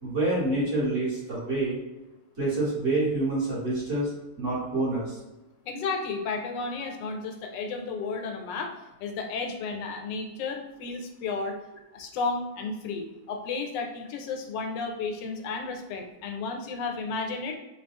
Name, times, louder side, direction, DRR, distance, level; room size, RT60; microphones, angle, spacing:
voice 1, 0.0-1.8 2.4-4.1 4.4-5.2, right 2 dB, 45° right, -9 dB, 1.8 m, -27 dB
voice 2, 5.7-8.7 9.0-11.6 11.9-17.6, left 4 dB, 80° left, 4 dB, 1.2 m, -33 dB
3.7 x 2.3 x 3.4 m, 1.0 s
omnidirectional pair, 1.9 m